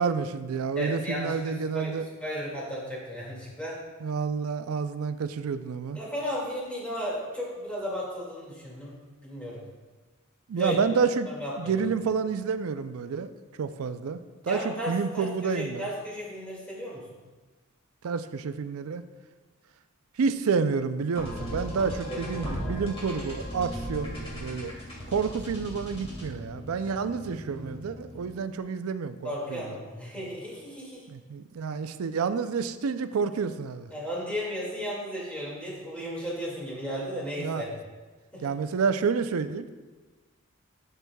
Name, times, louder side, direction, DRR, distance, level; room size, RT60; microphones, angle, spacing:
voice 1, 0.0-2.0 4.0-6.0 10.5-11.3 11.6-13.3 13.6-15.9 18.0-19.1 20.2-24.7 25.1-29.6 31.1-33.9 37.4-37.6 38.4-39.7, right 5 dB, 85° right, 11 dB, 0.4 m, -29 dB
voice 2, 0.8-1.9 2.2-3.8 5.9-8.9 9.2-9.6 10.5-10.8 11.3-11.8 14.5-17.2 21.8-22.9 29.2-31.0 33.9-37.7 38.3-38.5, equal, 5° left, -5 dB, 2.1 m, -35 dB
sound 1, 21.1-28.5, equal, 30° left, 1.9 m, -38 dB
11.5 x 6.7 x 2.3 m, 1.3 s
head